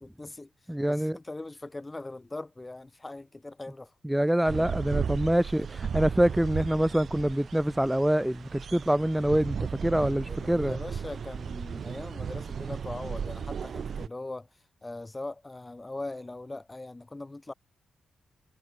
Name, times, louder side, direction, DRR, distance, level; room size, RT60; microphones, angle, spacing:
voice 1, 0.0-0.5 0.9-3.9 10.2-17.5, left 2 dB, 20° left, 6.0 m, -40 dB
voice 2, 0.7-1.2 4.0-10.8, right 1 dB, 5° right, 0.5 m, -25 dB
sound 1, 4.4-14.1, right 7 dB, 55° right, 0.8 m, -35 dB
cardioid pair, 100°, 0 cm